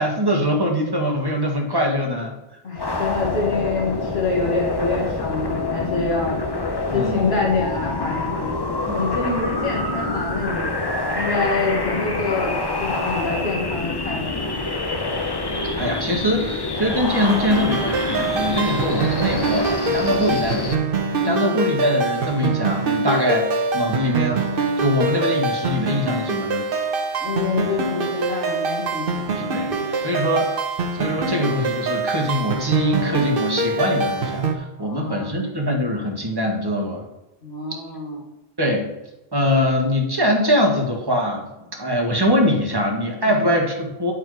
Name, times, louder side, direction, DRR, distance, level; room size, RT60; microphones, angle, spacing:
voice 1, 0.0-2.3 6.9-7.2 8.9-9.0 15.8-20.8 21.2-26.6 29.4-29.7 30.0-30.5 30.9-37.0 38.6-38.9 39.3-44.1, equal, 25° right, 0 dB, 1.5 m, -22 dB
voice 2, 2.6-6.4 6.9-10.7 11.1-14.6 21.2-21.6 27.2-30.1 34.8-35.4 37.4-38.2 43.2-43.5, left 3 dB, 85° left, -2 dB, 2.0 m, -26 dB
sound 1, 2.8-20.8, left 3 dB, 25° left, 0.7 m, -26 dB
sound 2, 17.2-34.5, right 3 dB, 60° right, 1.1 m, -24 dB
10.0 x 4.5 x 4.8 m, 0.96 s
omnidirectional pair, 1.0 m